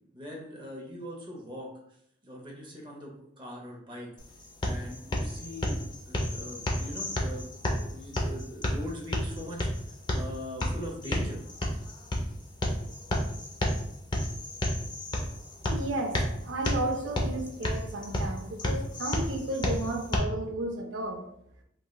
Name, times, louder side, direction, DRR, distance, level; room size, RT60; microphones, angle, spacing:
voice 1, 0.1-1.7 2.2-4.1 4.6-7.5 7.8-11.4, equal, 25° right, 0.6 m, -41 dB
sound 1, 4.2-20.2, left 1 dB, 25° left, 0.4 m, -32 dB
voice 2, 15.7-21.3, right 1 dB, 70° right, 0.4 m, -33 dB
3.0 x 2.8 x 2.2 m
head